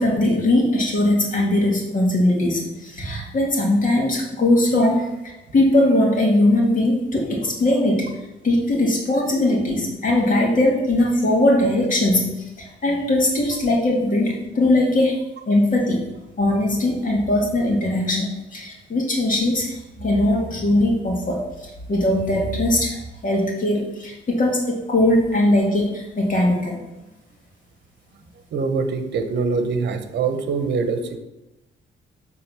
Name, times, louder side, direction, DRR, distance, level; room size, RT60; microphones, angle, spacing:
voice 1, 0.0-8.1 8.4-15.2 15.5-16.1 16.4-26.8, left 1 dB, 40° left, -2 dB, 2.1 m, -20 dB
voice 2, 28.5-31.2, right 4 dB, 60° right, 8 dB, 1.0 m, -23 dB
7.7 x 3.7 x 6.2 m, 0.96 s
cardioid pair, 90°, 20 cm